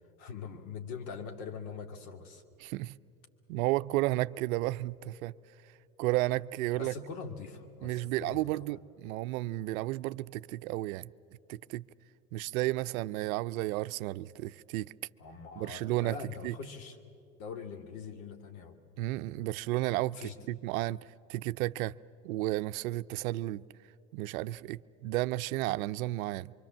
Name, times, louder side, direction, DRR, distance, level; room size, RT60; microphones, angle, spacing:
voice 1, 0.2-2.4 6.7-8.8 15.2-17.0 17.4-18.8 20.1-20.5, left 5 dB, 70° left, 6 dB, 2.4 m, -43 dB
voice 2, 2.6-2.9 3.5-5.3 6.0-6.9 7.8-11.1 11.5-11.8 12.3-14.9 15.6-16.2 16.4-16.5 19.0-20.2 20.5-21.0 21.3-21.9 22.2-23.6 24.1-26.5, right 17 dB, 65° right, 15 dB, 0.6 m, -32 dB
24.5 x 24.5 x 7.4 m, 2.5 s
hypercardioid pair, 95°, 45 cm